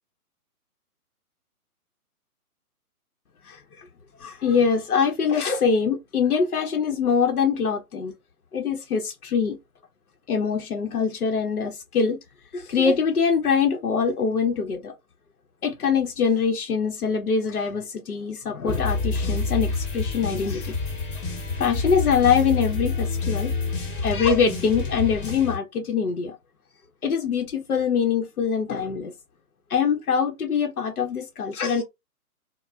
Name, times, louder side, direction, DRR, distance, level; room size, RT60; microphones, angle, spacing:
voice 1, 4.2-8.1 8.5-9.6 10.3-12.2 12.5-14.9 15.6-20.7 21.6-23.5 24.0-26.4 27.0-29.1 29.7-31.8, left 6 dB, 70° left, 0.8 m, -23 dB
sound 1, 18.7-25.6, left 4 dB, 35° left, 1.0 m, -28 dB
2.4 x 2.1 x 3.1 m
figure-of-eight pair, 135°, 46 cm